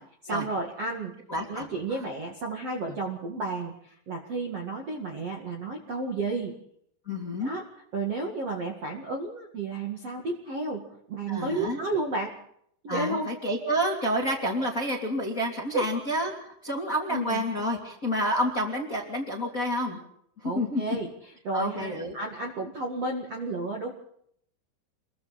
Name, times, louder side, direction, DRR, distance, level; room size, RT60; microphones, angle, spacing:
voice 1, 0.2-1.1 1.5-6.5 7.4-7.7 7.9-12.3 12.8-13.3 15.7-15.9 17.1-17.4 20.4-23.9, right 3 dB, 50° right, 0 dB, 2.0 m, -32 dB
voice 2, 1.3-1.7 7.1-7.5 11.3-11.8 12.9-16.3 16.6-20.0 20.4-21.0 21.5-22.1, equal, 25° left, 0 dB, 2.1 m, -29 dB
28.5 x 22.5 x 4.2 m, 0.68 s
omnidirectional pair, 5.8 m